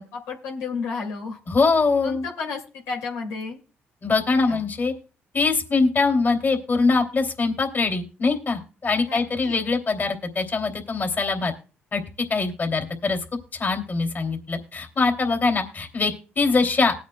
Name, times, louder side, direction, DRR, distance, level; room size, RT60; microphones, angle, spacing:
voice 1, 0.0-1.4 2.0-3.6 4.3-4.6 9.0-9.6, left 4 dB, 90° left, 0 dB, 2.3 m, -32 dB
voice 2, 1.5-2.2 4.0-4.9 5.3-11.5 11.9-12.0 12.3-13.2 13.5-16.9, left 4 dB, 40° left, 4 dB, 2.7 m, -23 dB
20.0 x 8.6 x 2.2 m, 0.35 s
supercardioid pair, 70°, 5 cm